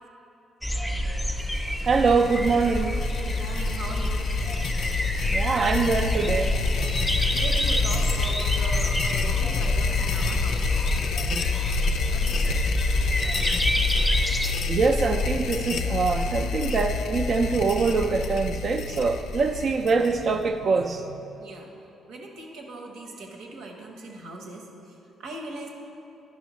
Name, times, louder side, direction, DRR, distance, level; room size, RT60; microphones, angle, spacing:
sound 1, 0.6-14.5, equal, 5° left, 0.6 m, -28 dB
sound 2, 1.4-20.5, left 4 dB, 75° left, 0.4 m, -28 dB
voice 1, 1.8-2.9 5.3-6.5 14.7-21.2, right 4 dB, 50° right, 4 dB, 0.3 m, -24 dB
voice 2, 3.2-4.3 7.3-10.9 12.1-12.6 21.4-21.7 22.1-25.7, right 2 dB, 85° right, 0 dB, 1.0 m, -39 dB
11.0 x 5.4 x 3.1 m, 2.8 s
cardioid pair, 90°, 0 cm